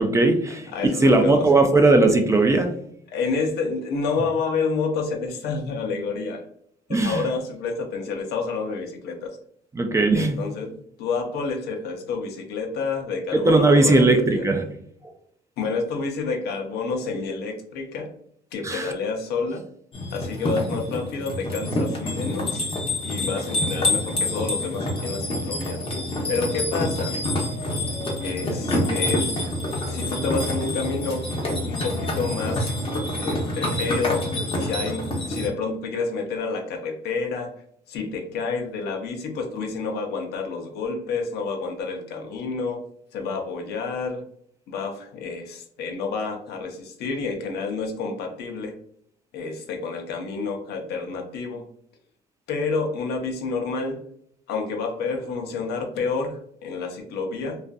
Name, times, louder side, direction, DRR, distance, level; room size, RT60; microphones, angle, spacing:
voice 1, 0.0-0.7 1.0-2.7 6.9-7.2 9.8-10.4 13.3-14.6 18.6-18.9, right 2 dB, 20° right, 0.4 m, -18 dB
voice 2, 0.7-1.4 3.1-6.5 6.9-9.4 10.1-14.4 15.6-18.1 18.5-19.6 20.1-22.7 23.0-25.9 26.3-27.2 28.2-29.3 29.9-32.8 33.2-37.5 37.9-42.9 43.1-44.2 44.7-48.8 49.3-51.7 52.5-54.0 54.5-57.6, left 4 dB, 75° left, 0.6 m, -29 dB
sound 1, 19.9-35.5, left 1 dB, 35° left, 0.7 m, -27 dB
2.5 x 2.4 x 2.2 m
cardioid pair, 110°, 17 cm